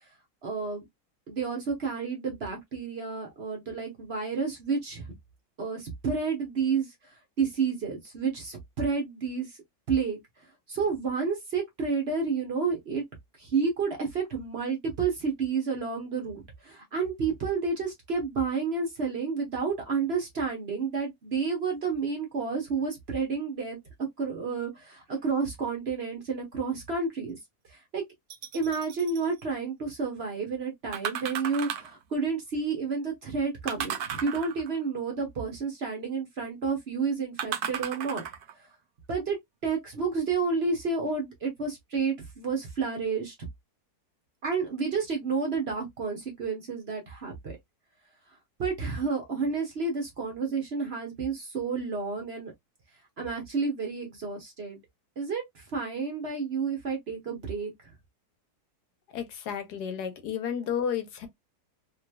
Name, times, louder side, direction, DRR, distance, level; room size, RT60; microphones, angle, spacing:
voice 1, 0.4-0.8 1.3-5.0 5.6-9.6 9.9-13.0 13.4-23.8 24.2-27.4 27.7-28.0 28.5-38.2 39.1-39.4 39.6-43.3 44.4-47.6 48.6-52.5 53.2-54.8 55.2-57.7, right 5 dB, 45° right, 1.0 m, -30 dB
sound 1, 28.3-29.2 30.9-32.0 33.7-34.8 37.4-38.5 39.2-39.3, right 9 dB, 75° right, 1.1 m, -35 dB
voice 2, 59.1-61.3, left 8 dB, 80° left, 1.3 m, -32 dB
3.0 x 3.0 x 2.2 m
omnidirectional pair, 1.8 m